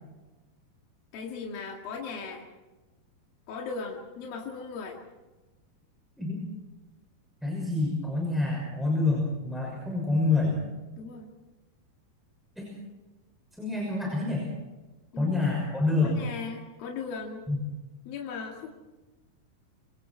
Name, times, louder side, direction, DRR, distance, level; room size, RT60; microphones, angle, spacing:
voice 1, 1.1-2.5 3.5-5.0 11.0-11.3 15.1-15.6 16.0-17.4 18.1-18.7, left 5 dB, 80° left, 0 dB, 3.9 m, -38 dB
voice 2, 7.4-10.5 12.6-12.7 13.6-14.4 15.2-16.2 17.5-17.6, left 3 dB, ahead, -1 dB, 5.8 m, -27 dB
26.5 x 26.5 x 4.6 m, 1.2 s
omnidirectional pair, 4.1 m